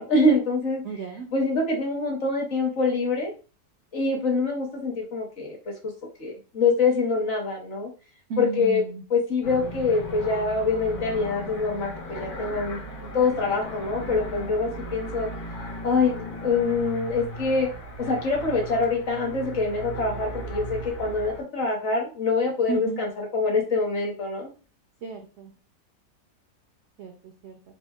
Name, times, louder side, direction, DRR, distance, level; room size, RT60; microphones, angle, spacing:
voice 1, 0.0-0.8 1.3-3.3 3.9-5.9 6.2-7.9 8.4-8.8 9.1-15.3 15.8-17.7 18.0-24.5, left 3 dB, 50° left, 0 dB, 1.0 m, -25 dB
voice 2, 0.8-1.3 8.3-9.0 22.7-23.0 25.0-25.5 27.0-27.6, right 5 dB, 75° right, 4 dB, 0.6 m, -33 dB
sound 1, 9.4-21.4, right 1 dB, 70° left, 1.4 m, -37 dB
4.4 x 2.4 x 2.3 m, 0.36 s
omnidirectional pair, 1.8 m